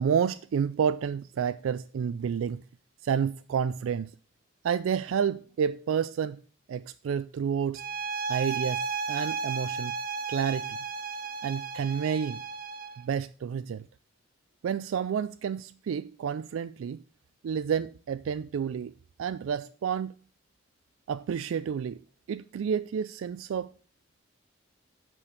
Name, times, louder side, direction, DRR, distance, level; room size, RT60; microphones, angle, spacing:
voice 1, 0.0-2.6 3.0-4.1 4.6-6.4 6.7-7.8 8.3-10.0 10.3-10.8 11.4-12.4 13.0-13.9 14.6-17.0 17.4-18.9 19.2-20.1 21.1-22.0 22.3-23.7, right 7 dB, 80° right, 0.3 m, -30 dB
sound 1, 7.8-13.0, right 4 dB, 45° right, 0.6 m, -34 dB
8.2 x 5.2 x 6.8 m
head